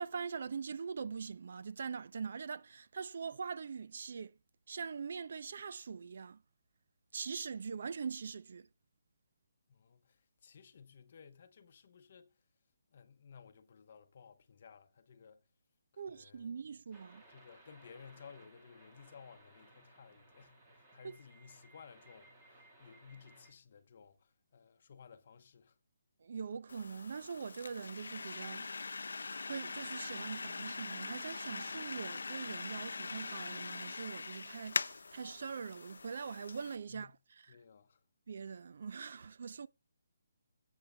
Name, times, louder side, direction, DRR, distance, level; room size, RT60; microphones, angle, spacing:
voice 1, 0.0-4.4 4.7-6.4 7.1-8.7 16.0-17.2 21.0-21.1 26.2-28.7 29.5-37.1 38.3-39.7, right 5 dB, 50° right, 0.5 m, -42 dB
voice 2, 9.7-12.3 12.9-15.4 15.9-16.5 17.3-25.8 36.9-37.2 37.5-38.0, left 6 dB, 40° left, 0.9 m, -57 dB
sound 1, 16.9-23.5, right 1 dB, 15° right, 1.8 m, -61 dB
sound 2, 26.7-36.8, left 4 dB, 85° left, 0.5 m, -42 dB
18.0 x 8.2 x 2.2 m
hypercardioid pair, 170°, 0 cm